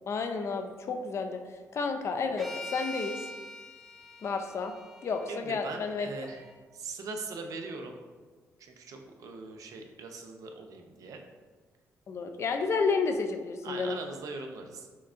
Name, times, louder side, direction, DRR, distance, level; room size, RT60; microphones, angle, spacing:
voice 1, 0.1-1.4 1.7-3.2 4.2-4.7 5.0-6.1 12.1-14.0, left 4 dB, 50° left, 6 dB, 0.4 m, -31 dB
sound 1, 2.4-6.6, left 2 dB, ahead, 0.7 m, -44 dB
voice 2, 5.3-6.5 6.7-8.0 8.6-11.2 13.6-14.9, right 3 dB, 70° right, 4 dB, 0.6 m, -41 dB
5.7 x 3.6 x 2.5 m, 1.4 s
cardioid pair, 105°, 6 cm